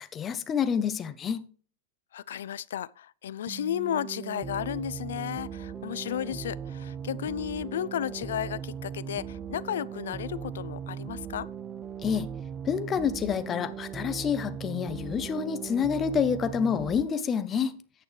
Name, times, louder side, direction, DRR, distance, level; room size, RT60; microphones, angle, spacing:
voice 1, 0.0-1.4 12.0-12.3 12.6-17.7, left 7 dB, 20° left, 0.7 m, -28 dB
voice 2, 2.1-11.5, left 10 dB, 85° left, 0.4 m, -33 dB
sound 1, 3.5-17.0, right 8 dB, 15° right, 0.5 m, -38 dB
13.5 x 8.8 x 3.2 m
supercardioid pair, 165°, 0 cm